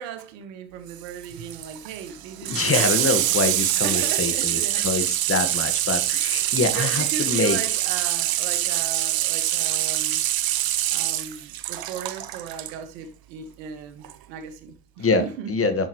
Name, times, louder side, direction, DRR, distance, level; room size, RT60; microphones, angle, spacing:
voice 1, 0.0-3.3 3.8-4.9 6.1-10.2 10.9-15.9, right 8 dB, 80° right, 1.7 m, -37 dB
Water tap faucet / Sink (filling or washing), 0.9-12.7 14.0-14.1, right 13 dB, 45° right, 0.8 m, -25 dB
voice 2, 2.5-7.6 15.0-15.2 15.5-15.9, left 4 dB, 25° left, 1.5 m, -25 dB
11.0 x 6.3 x 3.0 m
supercardioid pair, 85°, 49 cm